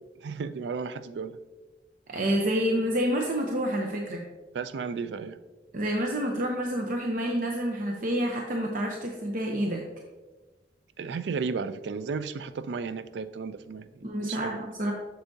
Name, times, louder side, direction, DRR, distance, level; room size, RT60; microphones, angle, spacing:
voice 1, 0.2-1.4 4.5-5.4 11.0-13.9 14.2-14.6, right 5 dB, 80° right, 13 dB, 0.4 m, -34 dB
voice 2, 2.1-4.2 5.7-9.8 14.0-14.9, equal, 50° right, 1 dB, 0.7 m, -28 dB
8.0 x 6.7 x 2.7 m, 1.2 s
head